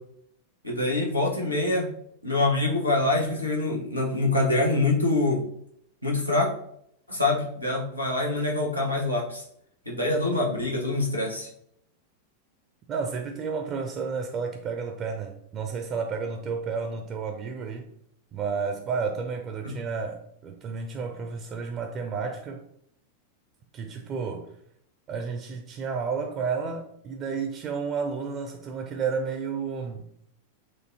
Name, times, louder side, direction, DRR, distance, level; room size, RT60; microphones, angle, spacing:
voice 1, 0.6-1.9 2.2-5.4 6.0-6.5 7.1-9.4 9.9-11.5 19.6-19.8, left 2 dB, 90° left, 1.1 m, -25 dB
voice 2, 12.9-17.9 18.3-22.6 23.7-24.5 25.1-30.0, right 5 dB, 30° right, 0.5 m, -31 dB
6.3 x 2.7 x 2.8 m
figure-of-eight pair, 90°, 0 cm